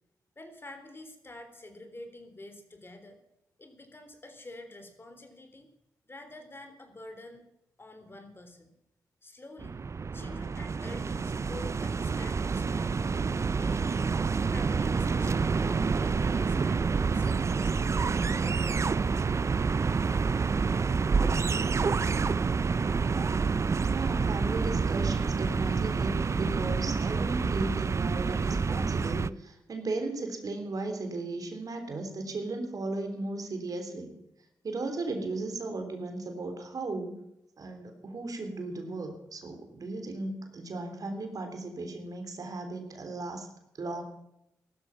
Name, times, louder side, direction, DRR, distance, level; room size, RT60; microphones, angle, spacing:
voice 1, 0.4-3.2 3.6-5.7 6.1-7.5 7.8-8.7 9.2-9.8 10.1-13.0 13.6-14.2 14.5-18.6, left 2 dB, 30° left, 7 dB, 3.7 m, -48 dB
sound 1, 9.6-29.3, right 5 dB, 45° right, 0.6 m, -28 dB
voice 2, 23.9-34.1 34.6-37.2 37.6-43.5 43.8-44.0, right 2 dB, 60° right, 5 dB, 3.5 m, -36 dB
16.0 x 13.0 x 5.9 m, 0.83 s
cardioid pair, 65°, 7 cm